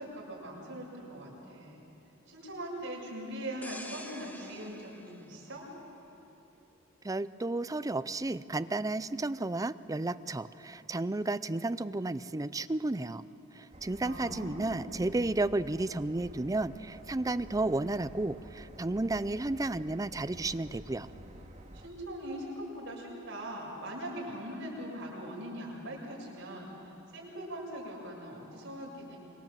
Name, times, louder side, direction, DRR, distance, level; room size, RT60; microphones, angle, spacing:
voice 1, 0.0-1.8 2.3-5.7 14.0-15.0 21.7-29.2, right 1 dB, 60° right, -2 dB, 6.9 m, -41 dB
sound 1, 3.6-6.3 6.8-7.0, left 1 dB, 10° left, 1.3 m, -48 dB
voice 2, 7.0-13.2 13.5-21.1, right 2 dB, 15° right, 14 dB, 0.5 m, -32 dB
sound 2, 13.7-21.9, equal, 35° right, 2.3 m, -50 dB
25.5 x 24.0 x 7.5 m, 2.9 s
head